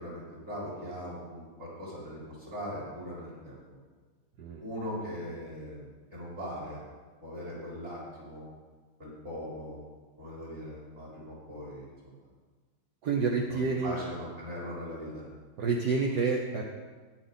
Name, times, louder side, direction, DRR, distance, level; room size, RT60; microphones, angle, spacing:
voice 1, 0.0-3.6 4.6-6.8 7.2-8.5 9.0-9.8 10.2-12.1 13.2-15.2, equal, 35° right, -7 dB, 4.5 m, -40 dB
voice 2, 13.0-14.0 15.6-16.6, right 4 dB, 60° right, 1 dB, 1.4 m, -28 dB
14.0 x 10.0 x 4.1 m, 1.4 s
omnidirectional pair, 2.1 m